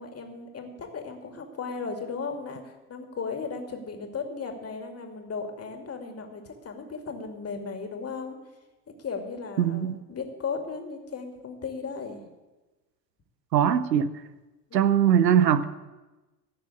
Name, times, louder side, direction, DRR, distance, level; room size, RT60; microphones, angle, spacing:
voice 1, 0.0-8.4 9.0-12.2 14.7-14.9, left 5 dB, 30° left, 4 dB, 2.4 m, -36 dB
voice 2, 9.6-10.0 13.5-14.1 14.7-15.7, right 9 dB, 80° right, 14 dB, 0.8 m, -21 dB
15.0 x 6.7 x 8.4 m, 1.1 s
figure-of-eight pair, 60°, 49 cm